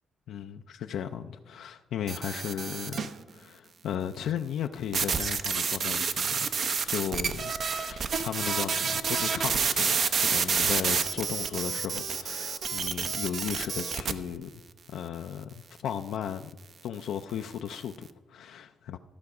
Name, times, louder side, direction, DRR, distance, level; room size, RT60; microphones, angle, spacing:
voice 1, 0.3-6.6 6.9-14.6 14.9-16.5 16.8-19.0, left 9 dB, 75° left, 0.4 m, -35 dB
sound 1, 2.1-3.2 4.9-14.1, right 6 dB, 55° right, 0.6 m, -29 dB
14.0 x 5.9 x 4.8 m
cardioid pair, 90°, 0 cm